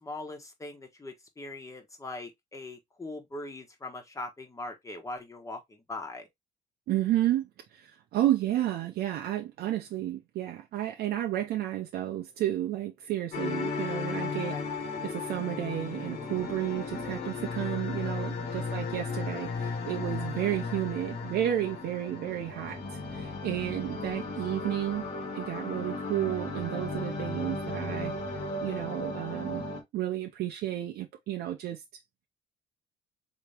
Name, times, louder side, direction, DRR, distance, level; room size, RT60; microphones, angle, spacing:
voice 1, 0.0-6.3 14.5-14.6 18.4-18.7 22.6-22.8, left 2 dB, 20° left, 1.3 m, -41 dB
voice 2, 6.9-14.6 15.0-25.1 25.3-28.1 28.6-29.6 29.9-31.8, right 13 dB, 70° right, 0.7 m, -32 dB
sound 1, 13.3-29.8, left 3 dB, 70° left, 1.9 m, -35 dB
4.2 x 3.0 x 3.3 m
cardioid pair, 110°, 17 cm